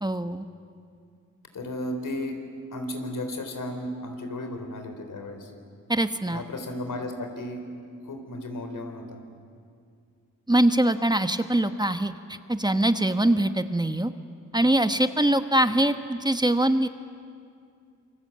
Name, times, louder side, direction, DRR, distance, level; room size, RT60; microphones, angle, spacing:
voice 1, 0.0-0.4 5.9-6.4 10.5-14.1 14.5-16.9, right 1 dB, 15° right, 9 dB, 1.1 m, -23 dB
voice 2, 1.5-2.4 2.7-5.5 6.3-7.6 8.0-9.2, left 1 dB, 75° left, 5 dB, 4.0 m, -34 dB
27.5 x 24.0 x 8.7 m, 2.3 s
cardioid pair, 75°, 32 cm